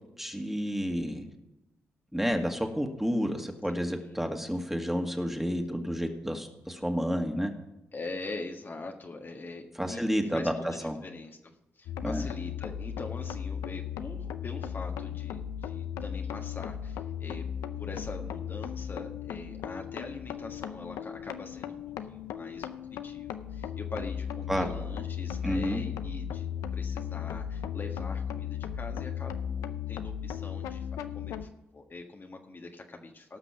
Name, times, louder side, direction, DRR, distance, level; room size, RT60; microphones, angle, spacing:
voice 1, 0.2-1.3 2.1-7.5 9.8-10.5 10.8-11.0 12.0-12.3 24.5-24.7 25.4-25.8, equal, 5° right, 3 dB, 2.0 m, -30 dB
voice 2, 3.8-4.1 7.9-17.4 17.8-22.8 23.0-30.9 31.1-33.4, left 3 dB, 40° left, 3 dB, 1.5 m, -43 dB
sound 1, 11.9-31.5, left 8 dB, 85° left, 0.6 m, -36 dB
18.0 x 6.0 x 5.9 m, 0.95 s
supercardioid pair, 45°, 5 cm